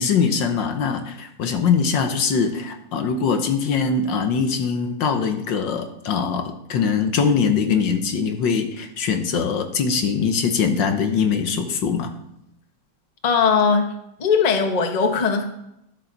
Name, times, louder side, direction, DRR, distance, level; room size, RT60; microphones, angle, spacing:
voice 1, 0.0-12.1, left 6 dB, 65° left, 6 dB, 1.5 m, -22 dB
voice 2, 13.2-13.9 14.2-15.4, left 5 dB, 30° left, 5 dB, 0.8 m, -19 dB
12.5 x 10.0 x 4.0 m, 0.83 s
omnidirectional pair, 2.3 m